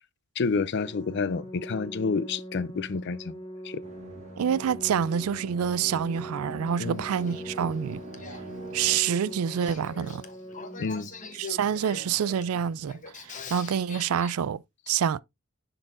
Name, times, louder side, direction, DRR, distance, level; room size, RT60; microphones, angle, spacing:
voice 1, 0.4-3.4 3.6-3.8 6.8-7.0 10.8-11.1, left 4 dB, 55° left, 0.5 m, -29 dB
Organ, 0.7-11.7, equal, 20° left, 1.5 m, -43 dB
sound 1, 3.8-9.0, right 1 dB, 35° right, 1.3 m, -44 dB
voice 2, 4.4-8.0 8.7-10.2 11.3-14.6 14.9-15.2, right 8 dB, 90° right, 0.4 m, -27 dB
Male speech man speaking / Female speech woman speaking / Conversation, 6.7-14.3, left 4 dB, 35° left, 1.0 m, -44 dB
10.5 x 3.9 x 2.5 m
head